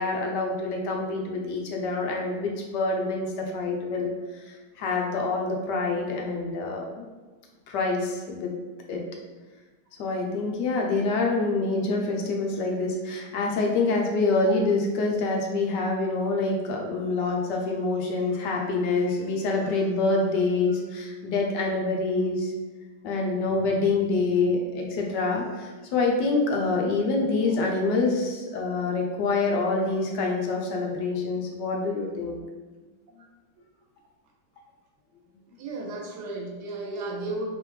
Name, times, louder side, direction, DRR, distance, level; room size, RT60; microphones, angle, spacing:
voice 1, 0.0-7.0 7.7-8.5 8.9-9.0 10.0-22.5 23.0-32.4, left 3 dB, 75° left, 0 dB, 1.1 m, -26 dB
voice 2, 35.6-37.5, right 2 dB, 75° right, 0 dB, 1.1 m, -34 dB
3.4 x 3.3 x 3.1 m, 1.3 s
omnidirectional pair, 2.0 m